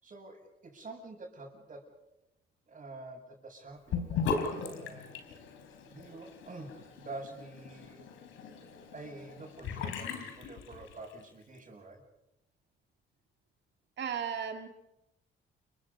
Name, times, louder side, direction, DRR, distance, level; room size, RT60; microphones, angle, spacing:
voice 1, 0.0-1.9 2.7-5.1 5.9-8.0 8.9-12.0, right 2 dB, 40° right, 6.6 m, -47 dB
Sink (filling or washing) / Bathtub (filling or washing), 3.9-11.2, left 5 dB, 85° left, 4.1 m, -38 dB
voice 2, 14.0-14.7, right 7 dB, 60° right, 2.1 m, -35 dB
29.5 x 24.0 x 5.3 m
cardioid pair, 90°, 20 cm